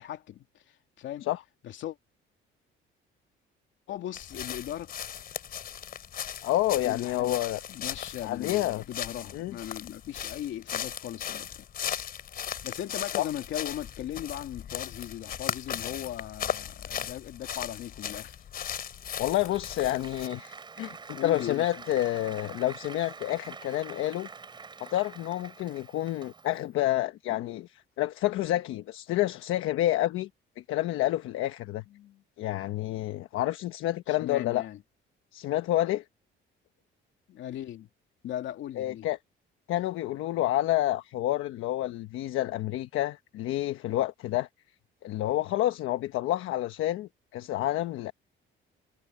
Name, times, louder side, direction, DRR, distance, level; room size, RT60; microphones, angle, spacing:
voice 1, 0.0-1.3 1.6-2.0 3.9-4.9 6.8-7.4 7.7-11.7 12.6-18.4 21.1-21.7 31.9-32.2 34.1-34.8 37.3-37.9 38.2-39.1, left 12 dB, 65° left, 2.8 m, -38 dB
sound 1, 4.1-20.3, left 9 dB, 45° left, 4.3 m, -37 dB
voice 2, 6.4-7.6 8.2-8.8 9.3-9.6 13.2-13.3 19.2-24.3 24.8-30.3 30.6-31.8 32.4-34.7 35.3-36.0 38.8-39.2 39.7-44.5 45.0-48.1, left 14 dB, 80° left, 1.1 m, -29 dB
Applause, 19.1-26.7, right 4 dB, 20° right, 4.3 m, -46 dB
cardioid pair, 160°, 21 cm